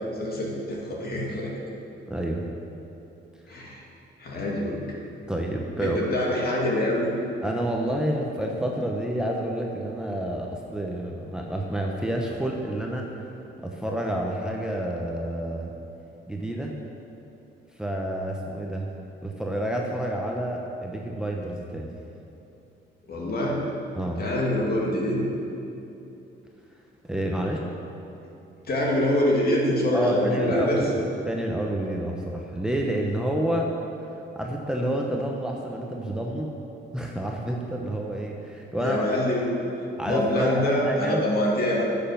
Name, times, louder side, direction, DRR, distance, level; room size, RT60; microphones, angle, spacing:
voice 1, 0.0-1.5 3.5-3.8 4.2-4.8 5.8-7.1 23.1-23.6 24.2-25.2 28.7-30.8 38.8-39.4 40.0-41.8, left 1 dB, 50° left, -3 dB, 2.4 m, -25 dB
voice 2, 2.1-2.4 3.5-3.6 5.3-6.0 7.4-13.1 13.6-15.7 16.3-16.7 17.8-18.9 19.2-22.0 23.9-24.2 27.0-27.6 29.9-30.9 31.2-33.7 34.3-36.5 36.9-39.0 40.0-41.2, right 1 dB, 5° right, -1 dB, 1.0 m, -29 dB
10.5 x 6.9 x 5.9 m, 2.9 s
cardioid pair, 90°, 20 cm